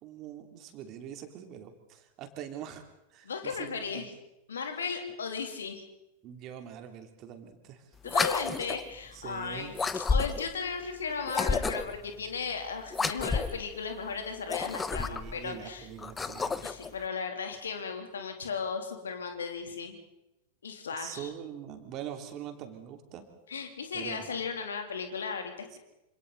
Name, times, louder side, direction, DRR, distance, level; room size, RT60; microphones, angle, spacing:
voice 1, 0.0-2.8 3.1-4.1 6.2-7.9 9.1-9.8 14.9-16.7 20.9-23.2 23.9-24.4 25.7-25.8, right 9 dB, 35° right, 6 dB, 2.9 m, -43 dB
voice 2, 3.2-4.1 4.5-5.8 8.0-15.9 16.6-20.0 20.6-21.3 23.5-25.8, left 5 dB, 70° left, 5 dB, 2.9 m, -36 dB
sound 1, 8.0-8.9 9.7-10.6 11.3-12.0 12.9-13.6 14.4-15.4 16.0-16.9, left 4 dB, 15° left, 0.9 m, -30 dB
27.0 x 26.5 x 4.0 m, 0.90 s
figure-of-eight pair, 90°, 0 cm